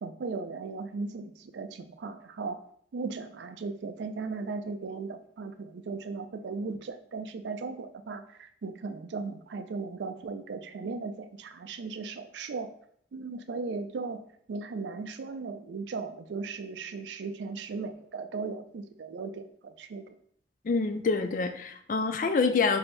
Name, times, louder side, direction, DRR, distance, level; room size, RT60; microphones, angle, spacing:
voice 1, 0.0-2.6 2.9-12.7 13.1-14.2 14.5-20.2, right 4 dB, 80° right, 9 dB, 0.4 m, -37 dB
voice 2, 20.6-22.8, left 4 dB, 45° left, 8 dB, 0.3 m, -26 dB
3.2 x 2.7 x 4.2 m, 0.63 s
head